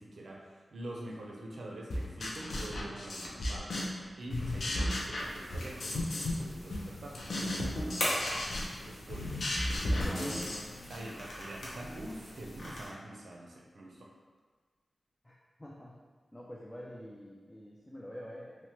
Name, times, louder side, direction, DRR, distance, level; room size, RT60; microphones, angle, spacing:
voice 1, 0.0-3.7 4.2-8.3 8.9-9.4 10.1-10.5 10.9-14.1, right 1 dB, 80° right, -2 dB, 0.5 m, -45 dB
sound 1, 1.9-4.0 4.3-6.4 6.7-11.1, left 1 dB, 80° left, 0.4 m, -34 dB
sound 2, 5.1-12.9, left 1 dB, 65° left, 0.8 m, -41 dB
voice 2, 10.0-10.6 15.2-15.3 15.6-16.0 16.3-18.7, equal, 15° left, -4 dB, 0.3 m, -46 dB
2.9 x 2.1 x 2.8 m, 1.5 s
wide cardioid pair, 75°, 0 cm